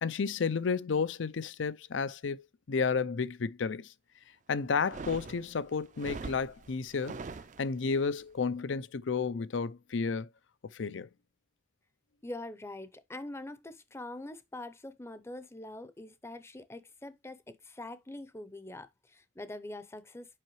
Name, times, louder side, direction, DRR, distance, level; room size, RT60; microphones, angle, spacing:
voice 1, 0.0-3.9 4.5-7.2 7.6-10.3 10.7-11.1, left 5 dB, 75° left, 0.5 m, -32 dB
sound 1, 4.8-8.0, right 3 dB, 40° right, 0.5 m, -43 dB
voice 2, 12.2-20.4, left 1 dB, 15° left, 0.6 m, -44 dB
7.7 x 5.5 x 3.1 m
head